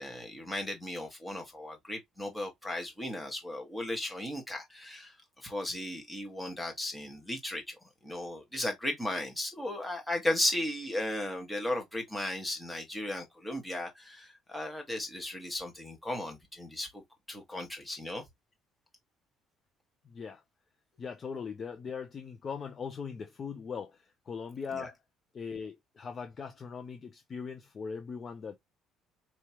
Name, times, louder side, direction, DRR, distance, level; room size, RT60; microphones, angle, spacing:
voice 1, 0.0-7.7 8.0-17.0 17.3-18.2 24.7-24.9, left 1 dB, 5° left, 1.6 m, -36 dB
voice 2, 20.1-20.4 21.0-25.0 25.3-28.6, left 6 dB, 25° left, 0.5 m, -40 dB
4.6 x 3.2 x 2.9 m
cardioid pair, 170°, 0 cm